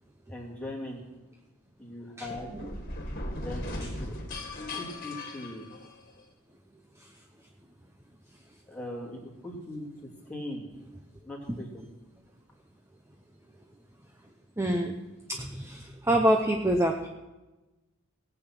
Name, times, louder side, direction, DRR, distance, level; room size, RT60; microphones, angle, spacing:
voice 1, 0.3-1.0 1.8-2.5 3.4-3.7 4.0-4.1 4.7-5.7 8.7-9.9 10.3-10.7 11.2-11.8, left 1 dB, 5° left, -2 dB, 2.8 m, -39 dB
sound 1, 2.2-6.2, left 1 dB, 40° left, 2.1 m, -38 dB
voice 2, 14.6-15.0 15.3-17.1, right 1 dB, 10° right, 3 dB, 0.8 m, -26 dB
18.5 x 8.2 x 5.9 m, 1.1 s
head